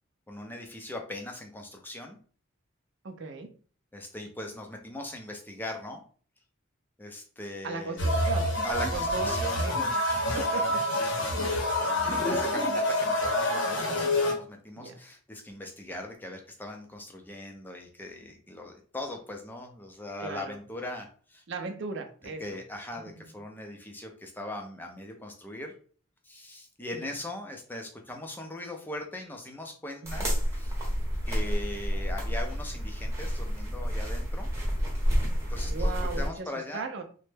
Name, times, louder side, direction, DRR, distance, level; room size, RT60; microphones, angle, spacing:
voice 1, 0.3-2.2 3.9-6.0 7.0-8.1 8.6-9.6 10.3-10.7 11.0-21.4 22.4-25.7 26.2-30.8 31.3-34.5 35.5-36.8, left 1 dB, 10° left, 2 dB, 0.4 m, -40 dB
voice 2, 3.0-3.5 7.6-8.5 8.9-9.9 10.3-10.8 14.8-15.0 20.2-20.6 21.5-22.6 22.9-23.2 26.9-27.1 30.0-30.3 35.7-37.0, right 3 dB, 55° right, 6 dB, 0.4 m, -37 dB
sound 1, 8.0-14.3, left 1 dB, 65° left, 0.8 m, -27 dB
sound 2, 30.0-36.3, equal, 15° right, 0.8 m, -29 dB
3.1 x 2.1 x 3.2 m, 0.42 s
head